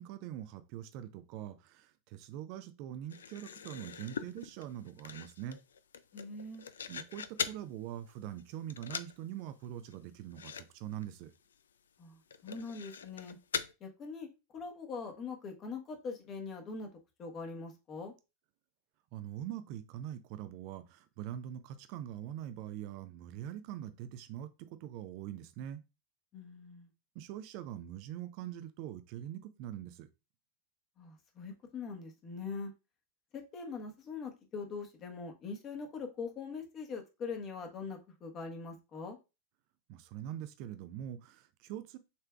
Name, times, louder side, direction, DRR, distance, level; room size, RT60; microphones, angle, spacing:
voice 1, 0.0-5.6 6.9-11.3 19.1-25.8 27.2-30.1 39.9-42.0, right 11 dB, 45° right, 0.5 m, -43 dB
sound 1, 3.1-7.7 8.1-8.4 8.7-9.2 9.5-9.6 9.9-10.0 10.3-10.7 10.9-11.0 11.5-11.6 12.3-13.7, left 7 dB, 65° left, 0.3 m, -41 dB
voice 2, 6.1-6.6 12.0-12.2 12.4-13.4 13.8-14.3 14.5-16.9 17.2-18.1 26.3-26.9 31.0-32.7 33.3-39.2, left 4 dB, 30° left, 1.2 m, -42 dB
6.7 x 3.4 x 2.4 m
figure-of-eight pair, 90°, 0 cm